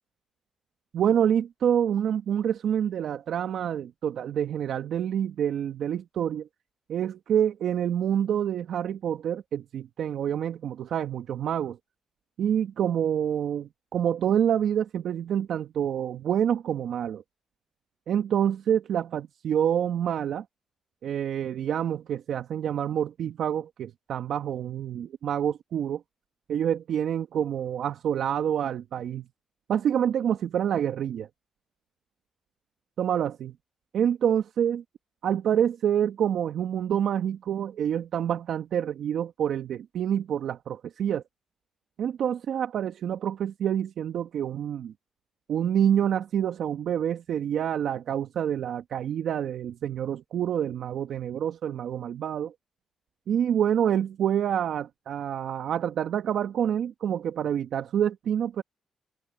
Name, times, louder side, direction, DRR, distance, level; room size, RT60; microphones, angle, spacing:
voice 1, 0.9-6.5 6.9-11.8 12.4-17.2 18.1-20.4 21.0-26.0 26.5-29.2 29.7-31.3 33.0-33.5 33.9-34.8 35.2-41.2 42.0-44.9 45.5-52.5 53.3-58.6, right 9 dB, 70° right, 1.7 m, -27 dB
supercardioid pair, 60°, 0 cm